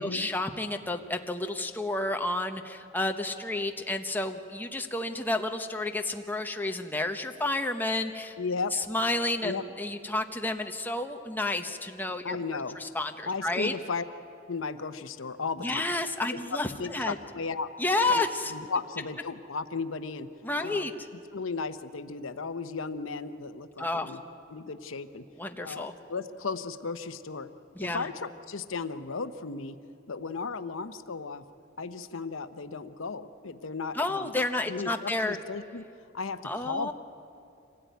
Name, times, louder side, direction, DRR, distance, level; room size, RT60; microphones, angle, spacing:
voice 1, 0.0-8.3 8.7-12.4 12.8-13.7 15.6-17.2 17.8-18.5 20.4-20.9 23.8-24.1 25.4-25.9 27.8-28.1 33.9-35.4 36.4-36.9, left 2 dB, 10° left, 5 dB, 1.0 m, -30 dB
voice 2, 8.4-8.8 9.4-9.6 12.2-12.8 13.3-14.0 14.5-15.9 16.3-17.7 18.1-20.3 20.6-20.9 21.3-24.2 24.5-25.2 25.6-27.5 27.9-29.8 30.1-31.4 31.8-34.3 34.7-35.8 36.1-36.9, left 4 dB, 80° left, 11 dB, 0.8 m, -35 dB
25.5 x 17.0 x 9.3 m, 2.6 s
head